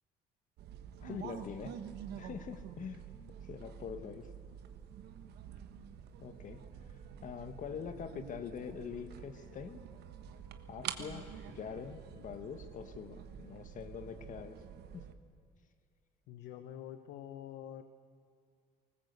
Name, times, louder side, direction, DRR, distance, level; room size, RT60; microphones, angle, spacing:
sound 1, 0.6-15.1, right 9 dB, 75° right, 1.3 m, -48 dB
voice 1, 1.0-1.8 2.1-3.0 3.4-4.3 6.2-6.6 6.9-9.8 10.7-14.6 14.9-15.0, left 7 dB, 50° left, 9 dB, 1.3 m, -44 dB
voice 2, 16.3-17.8, left 10 dB, 85° left, 9 dB, 1.0 m, -47 dB
19.5 x 19.5 x 8.0 m, 2.2 s
cardioid pair, 110°, 17 cm